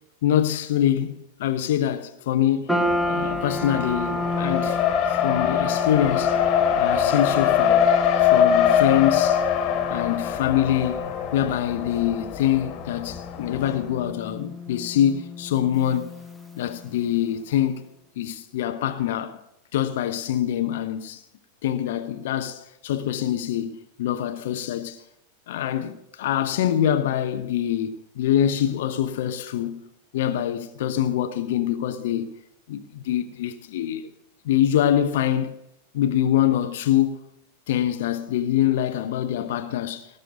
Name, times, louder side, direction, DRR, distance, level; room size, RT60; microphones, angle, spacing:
voice 1, 0.2-2.7 3.0-4.8 5.1-6.4 6.8-7.9 8.2-9.4 9.9-11.0 11.3-16.1 16.5-17.8 18.2-19.4 19.7-21.2 21.6-25.0 25.5-29.8 30.1-32.3 32.7-34.1 34.4-35.5 35.9-37.2 37.7-40.1, left 11 dB, 55° left, 1.0 m, -24 dB
sound 1, 2.7-17.1, left 1 dB, ahead, 1.5 m, -32 dB
Race car auto racing, 2.8-13.8, left 9 dB, 35° left, 2.2 m, -23 dB
18.5 x 6.7 x 7.9 m
figure-of-eight pair, 90°, 0 cm